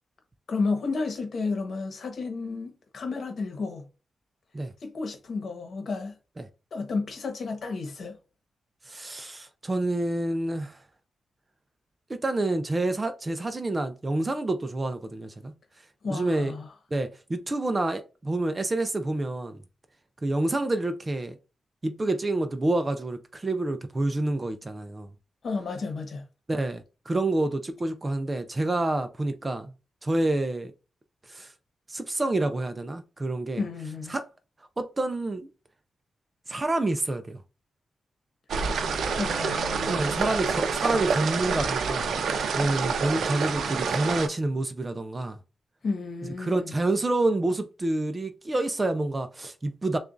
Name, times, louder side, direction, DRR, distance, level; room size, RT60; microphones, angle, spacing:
voice 1, 0.5-3.8 4.8-6.1 6.7-8.2 16.0-16.7 25.4-26.2 33.6-34.1 39.1-40.3 45.8-46.6, left 4 dB, 55° left, 1.1 m, -32 dB
voice 2, 8.9-10.8 12.1-15.5 16.1-16.5 16.9-19.6 20.2-21.4 21.8-25.1 26.5-29.7 30.0-30.7 31.3-31.5 31.9-33.6 34.1-34.3 34.8-35.5 36.5-37.4 39.9-42.1 42.5-45.4 46.4-50.0, right 2 dB, 25° right, 0.5 m, -28 dB
sound 1, 38.5-44.3, right 5 dB, 75° right, 0.6 m, -27 dB
6.6 x 2.4 x 2.6 m
wide cardioid pair, 120°, 0 cm